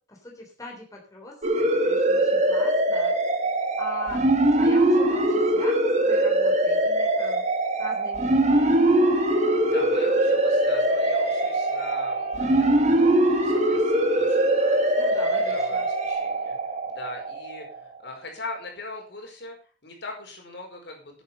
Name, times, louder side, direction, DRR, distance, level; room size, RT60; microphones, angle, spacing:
voice 1, 0.1-3.1 3.8-4.2 4.5-7.4 7.8-8.5 14.9-15.9, left 2 dB, 20° left, -1 dB, 3.6 m, -41 dB
sound 1, 1.4-17.8, right 1 dB, 40° right, 1.9 m, -22 dB
sound 2, 8.5-16.1, left 6 dB, 90° left, 4.5 m, -43 dB
voice 2, 9.6-16.6 16.9-21.2, left 2 dB, 65° left, 1 dB, 4.9 m, -41 dB
10.0 x 9.9 x 5.6 m, 0.38 s
head